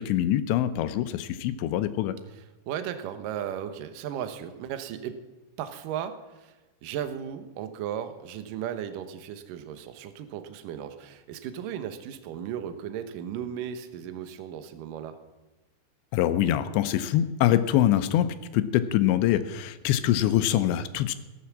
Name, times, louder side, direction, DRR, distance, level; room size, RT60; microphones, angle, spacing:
voice 1, 0.0-2.2 16.1-18.3 18.5-21.1, left 12 dB, 80° left, 11 dB, 2.9 m, -24 dB
voice 2, 2.7-5.2 5.6-6.6 6.8-15.2, right 9 dB, 75° right, 9 dB, 2.1 m, -36 dB
17.5 x 9.5 x 7.3 m, 1.2 s
omnidirectional pair, 5.2 m